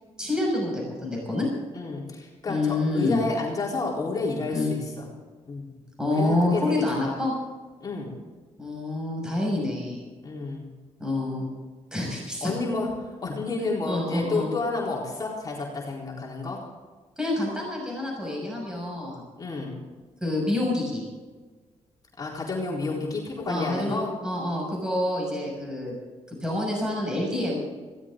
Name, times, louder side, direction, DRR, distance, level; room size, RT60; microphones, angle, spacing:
voice 1, 0.2-1.5 2.5-3.2 4.5-4.7 6.0-7.3 8.6-10.0 11.0-11.5 11.9-12.5 13.9-14.5 17.2-19.2 20.2-21.0 23.5-25.9 26.4-27.6, left 2 dB, 5° right, -3 dB, 6.1 m, -27 dB
voice 2, 1.7-5.1 5.5-5.6 6.1-6.6 7.0-7.1 7.8-8.1 10.2-10.7 12.4-12.9 13.2-16.6 19.4-19.7 22.2-24.1, left 3 dB, 30° left, -4 dB, 4.1 m, -30 dB
20.5 x 16.5 x 3.8 m, 1.4 s
cardioid pair, 120°, 12 cm